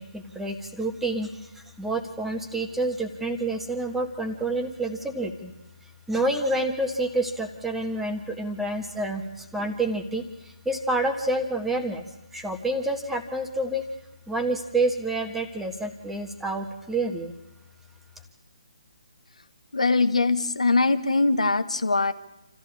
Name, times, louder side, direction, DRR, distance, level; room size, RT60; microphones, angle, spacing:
voice 1, 0.0-1.5 1.8-5.5 6.1-12.0 12.3-13.9 14.3-17.3, right 2 dB, 5° right, 5 dB, 1.6 m, -28 dB
voice 2, 19.7-22.1, left 3 dB, 75° left, 11 dB, 1.3 m, -22 dB
27.5 x 14.5 x 8.7 m, 0.93 s
figure-of-eight pair, 140°, 4 cm